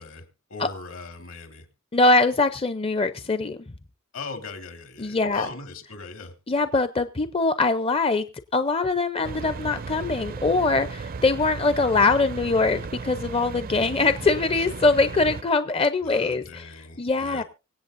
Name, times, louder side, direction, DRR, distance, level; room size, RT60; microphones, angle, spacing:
voice 1, 0.0-1.7 4.1-6.3 16.0-17.4, left 4 dB, 75° left, 3.1 m, -39 dB
voice 2, 1.9-3.6 5.0-5.5 6.5-8.3 8.5-17.4, left 3 dB, 25° left, 0.6 m, -22 dB
sound 1, 9.2-15.4, right 4 dB, 45° right, 0.5 m, -35 dB
24.5 x 8.3 x 2.6 m
head